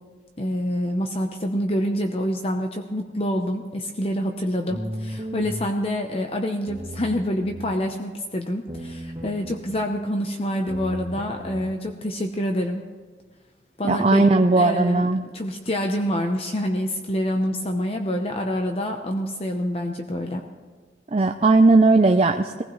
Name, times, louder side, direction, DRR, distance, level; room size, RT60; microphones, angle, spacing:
voice 1, 0.4-12.8 13.8-14.3 14.5-15.1 15.3-20.4, equal, 35° left, 4 dB, 0.8 m, -26 dB
sound 1, 4.7-5.7 6.7-7.7 8.7-9.7 10.7-11.6, equal, 15° right, 2.7 m, -35 dB
voice 2, 13.9-15.2 21.1-22.6, right 3 dB, 35° right, 4 dB, 0.4 m, -17 dB
22.0 x 15.5 x 3.2 m, 1.5 s
head